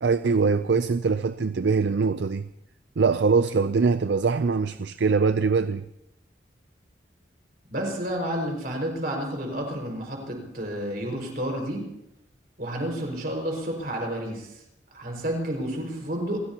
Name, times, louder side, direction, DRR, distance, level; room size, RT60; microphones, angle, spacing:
voice 1, 0.0-2.5 3.0-5.8, right 4 dB, 75° right, 0.5 m, -23 dB
voice 2, 7.7-11.8 12.6-14.6 14.9-16.4, equal, 55° right, 5.4 m, -30 dB
28.5 x 17.0 x 2.9 m
head